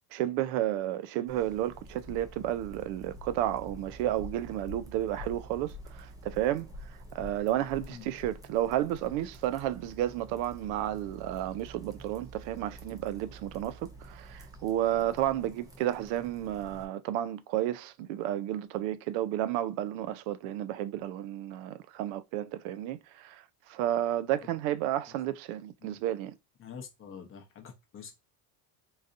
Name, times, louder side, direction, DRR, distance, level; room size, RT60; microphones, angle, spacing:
voice 1, 0.1-6.7 7.1-26.3, right 12 dB, 75° right, 0.5 m, -32 dB
sound 1, 1.3-16.9, equal, 10° right, 0.4 m, -48 dB
voice 2, 26.6-28.1, left 7 dB, 30° left, 0.7 m, -46 dB
3.9 x 2.7 x 2.5 m
cardioid pair, 145°, 46 cm